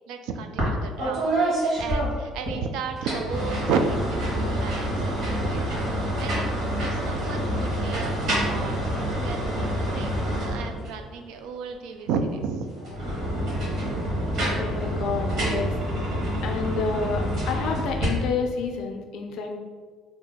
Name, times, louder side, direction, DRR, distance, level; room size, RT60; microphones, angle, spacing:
voice 1, 0.1-6.5 6.8-9.7 9.9-12.7, right 5 dB, 75° right, 6 dB, 0.3 m, -33 dB
sound 1, 0.6-0.7 1.0-2.6 3.0-11.0 12.8-18.0, equal, 50° right, 1.3 m, -27 dB
voice 2, 14.6-15.8 16.4-19.6, left 4 dB, 60° left, 4 dB, 0.4 m, -29 dB
2.8 x 2.2 x 4.1 m, 1.5 s
cardioid pair, 175°, 0 cm